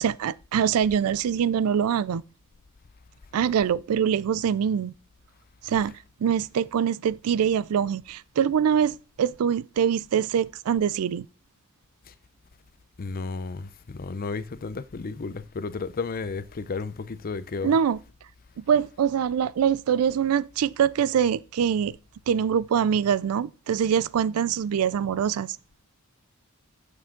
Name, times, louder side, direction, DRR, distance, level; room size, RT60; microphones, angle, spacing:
voice 1, 0.0-2.2 3.3-4.9 5.6-6.0 6.2-11.3 17.6-18.0 18.6-22.0 22.3-25.6, right 8 dB, 70° right, 0.3 m, -24 dB
voice 2, 13.0-17.8, left 4 dB, 40° left, 0.5 m, -33 dB
8.3 x 6.7 x 3.7 m
head